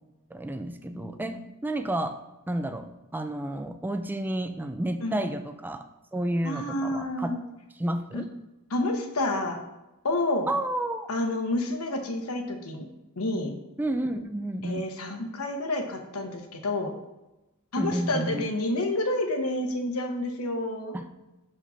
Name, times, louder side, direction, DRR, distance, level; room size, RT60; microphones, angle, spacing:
voice 1, 0.3-2.1 2.5-7.3 7.8-8.3 10.5-11.1 13.8-14.9 17.8-18.5 20.9-21.0, right 1 dB, 10° right, 8 dB, 0.3 m, -31 dB
voice 2, 0.9-1.4 5.0-5.2 6.4-7.4 8.1-8.2 8.7-9.6 10.0-10.5 11.1-12.9 13.2-13.5 14.6-16.9 17.7-21.0, left 1 dB, 80° left, 5 dB, 1.0 m, -29 dB
5.6 x 5.0 x 5.5 m, 1.0 s
head